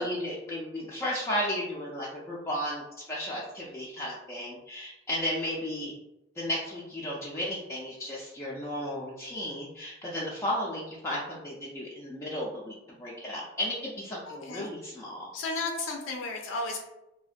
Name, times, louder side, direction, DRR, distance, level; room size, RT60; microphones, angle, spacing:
voice 1, 0.0-5.9 6.4-15.3, equal, 15° left, -6 dB, 0.3 m, -34 dB
voice 2, 14.3-14.7 15.3-16.8, left 3 dB, 85° left, 2 dB, 0.4 m, -34 dB
2.4 x 2.1 x 2.4 m, 0.90 s
head